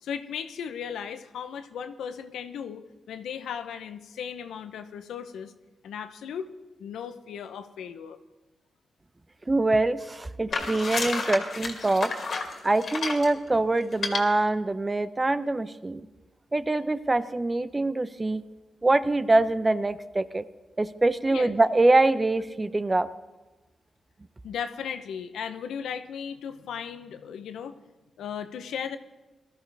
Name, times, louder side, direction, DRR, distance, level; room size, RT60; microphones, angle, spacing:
voice 1, 0.0-5.5 5.8-6.5 6.8-8.2 12.3-12.4 21.3-21.5 24.4-27.8 28.2-29.0, left 7 dB, 90° left, 10 dB, 0.8 m, -36 dB
voice 2, 9.5-12.1 12.6-16.0 16.5-18.4 18.8-20.4 20.8-23.1, right 2 dB, 25° right, 13 dB, 0.8 m, -24 dB
sound 1, 10.5-13.3 13.9-14.2, left 4 dB, 65° left, 2.3 m, -30 dB
19.0 x 13.0 x 3.4 m, 1.1 s
cardioid pair, 55°, 0 cm